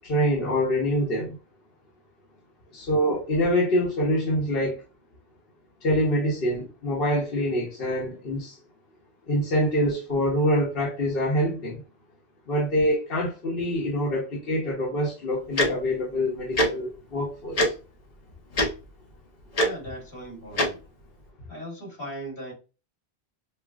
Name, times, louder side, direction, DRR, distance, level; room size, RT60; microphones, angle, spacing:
voice 1, 0.0-1.4 2.7-4.8 5.8-8.6 9.3-11.8 12.5-17.7, equal, 65° left, 1.2 m, -25 dB
Tick-tock, 15.6-15.7 16.6-16.7 17.6-17.7 18.5-18.7 19.6-19.7 20.6-20.7, left 1 dB, 40° left, 0.8 m, -21 dB
voice 2, 19.6-20.8 21.5-22.5, right 1 dB, 80° left, 2.2 m, -38 dB
5.5 x 2.1 x 2.4 m
omnidirectional pair, 1.1 m